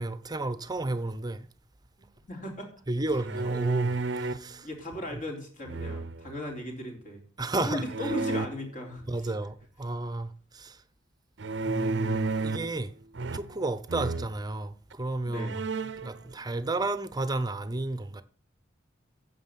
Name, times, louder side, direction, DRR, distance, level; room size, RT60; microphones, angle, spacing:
voice 1, 0.0-1.5 2.9-4.7 7.4-8.1 9.1-10.8 11.7-12.9 13.3-15.7 16.0-18.2, right 2 dB, 20° right, 0.8 m, -32 dB
voice 2, 2.0-2.7 4.6-7.2 7.6-9.3 15.2-15.6, left 1 dB, 45° left, 3.8 m, -37 dB
sound 1, 3.1-4.5 5.7-6.4 7.9-8.5 11.4-12.8 13.1-13.6 13.9-14.3 14.9-15.0 15.4-16.1, right 3 dB, 70° right, 0.7 m, -31 dB
9.4 x 7.7 x 7.6 m
head